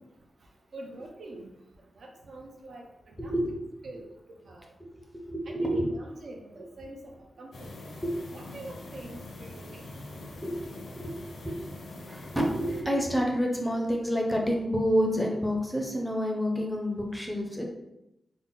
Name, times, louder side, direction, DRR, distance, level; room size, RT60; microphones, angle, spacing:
voice 1, 0.7-1.5 2.0-3.3 3.8-4.1 4.4-4.7 5.5-7.9 8.3-9.8, right 2 dB, 65° right, 1 dB, 0.5 m, -45 dB
voice 2, 3.2-3.7 4.8-4.9 5.1-5.9 8.0-8.2 10.4-11.6 12.0-17.7, equal, 5° left, 0 dB, 0.5 m, -29 dB
sound 1, 7.5-12.8, left 2 dB, 90° left, 0.6 m, -43 dB
3.7 x 2.0 x 3.8 m, 0.88 s
wide cardioid pair, 150°, 0 cm